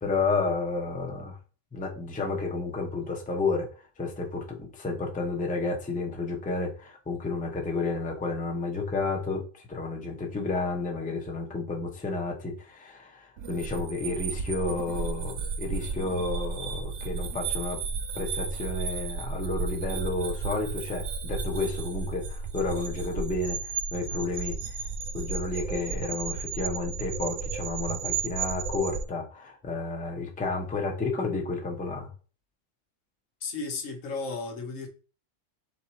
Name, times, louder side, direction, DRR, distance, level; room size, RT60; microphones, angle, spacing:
voice 1, 0.0-1.4 1.7-3.7 4.0-9.4 9.7-17.8 18.1-23.6 23.9-24.6 25.1-32.1, left 3 dB, 10° left, 0.5 m, -31 dB
sound 1, 13.4-29.0, right 5 dB, 80° right, 1.0 m, -33 dB
voice 2, 33.4-34.9, left 4 dB, 80° left, 1.2 m, -34 dB
3.8 x 2.9 x 4.1 m
omnidirectional pair, 1.3 m